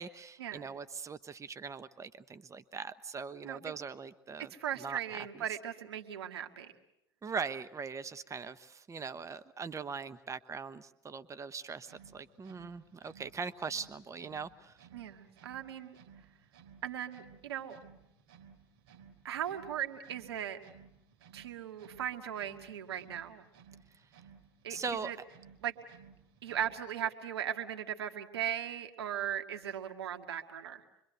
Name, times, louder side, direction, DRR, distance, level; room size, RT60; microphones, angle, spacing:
voice 1, 0.0-4.5 4.8-5.4 7.2-14.8 23.9-24.0 24.7-25.1, right 5 dB, 25° right, 13 dB, 1.0 m, -41 dB
voice 2, 4.5-6.7 14.9-16.0 16.8-17.8 19.2-20.6 21.3-23.4 24.6-24.8 25.0-25.2 25.6-25.7 26.4-30.8, right 9 dB, 85° right, 5 dB, 1.9 m, -38 dB
sound 1, 11.8-27.0, right 6 dB, 70° right, 3.7 m, -59 dB
26.0 x 23.5 x 8.1 m, 0.81 s
hypercardioid pair, 75°, 13 cm